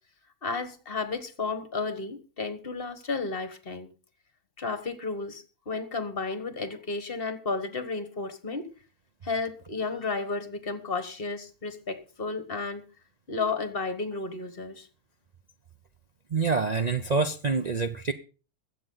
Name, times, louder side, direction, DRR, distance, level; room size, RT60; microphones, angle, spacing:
voice 1, 0.4-3.9 4.6-8.7 9.2-12.8 13.3-14.9, left 3 dB, 40° left, 1.5 m, -32 dB
voice 2, 16.3-18.1, right 4 dB, 40° right, 0.6 m, -26 dB
21.5 x 7.8 x 3.9 m
omnidirectional pair, 1.5 m